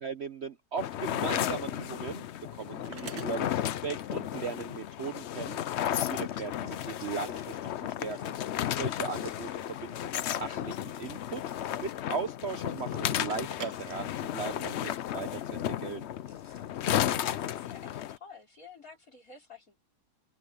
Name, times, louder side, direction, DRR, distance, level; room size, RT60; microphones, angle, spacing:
voice 1, 0.0-2.2 2.5-8.4 8.7-16.1, right 5 dB, 50° right, 0.9 m, -38 dB
sound 1, 0.8-18.2, left 11 dB, 75° left, 0.6 m, -33 dB
sound 2, 1.7-14.9, right 6 dB, 80° right, 2.3 m, -51 dB
sound 3, 5.8-18.0, left 1 dB, 20° left, 6.6 m, -61 dB
voice 2, 17.1-19.8, left 4 dB, 55° left, 5.9 m, -51 dB
open air
omnidirectional pair, 1.8 m